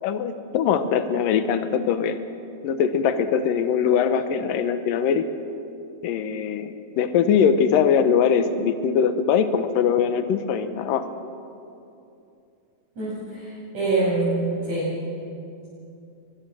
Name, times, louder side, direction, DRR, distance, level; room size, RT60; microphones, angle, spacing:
voice 1, 0.0-2.2 2.6-5.3 6.0-11.1, left 7 dB, 70° left, 10 dB, 2.4 m, -22 dB
voice 2, 13.0-14.9, right 2 dB, 45° right, -11 dB, 8.6 m, -25 dB
24.0 x 22.0 x 7.6 m, 2.7 s
omnidirectional pair, 4.8 m